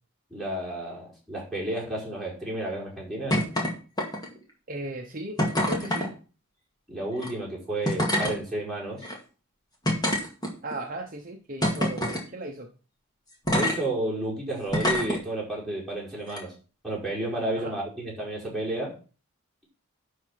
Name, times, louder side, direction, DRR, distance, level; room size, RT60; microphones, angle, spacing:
voice 1, 0.3-3.4 6.9-9.1 13.5-16.5 16.8-19.0, right 1 dB, ahead, -6 dB, 5.1 m, -31 dB
sound 1, 3.3-3.7 4.0-4.4 5.4-6.1 7.1-7.3 7.8-8.3 9.0-9.1 9.8-10.7 11.6-12.2 13.5-13.8 14.7-15.2 16.3-16.4, equal, 20° left, 2.2 m, -25 dB
voice 2, 4.7-5.4 5.7-6.1 10.6-12.7 17.5-17.8, right 1 dB, 40° right, 2 dB, 1.0 m, -36 dB
11.5 x 4.6 x 5.8 m, 0.36 s
head